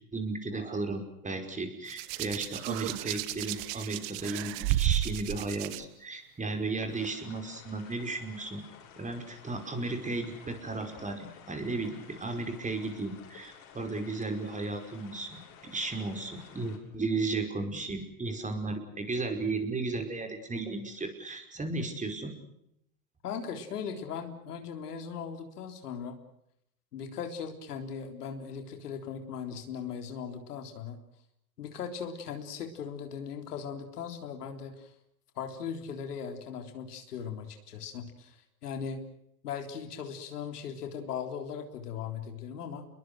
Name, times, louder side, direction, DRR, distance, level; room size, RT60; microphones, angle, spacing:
voice 1, 0.1-8.6 8.9-15.4 15.7-22.3, right 3 dB, 15° right, 5 dB, 5.4 m, -34 dB
Hands, 1.9-5.8 6.8-7.1, right 16 dB, 55° right, 1.5 m, -32 dB
sound 1, 6.9-16.8, left 8 dB, 60° left, 7.0 m, -53 dB
voice 2, 23.2-26.2 26.9-31.0 31.6-34.9 35.4-39.0 39.4-42.9, left 7 dB, 85° left, 6 dB, 3.8 m, -38 dB
29.5 x 22.0 x 6.4 m, 0.76 s
hypercardioid pair, 100°, 45 cm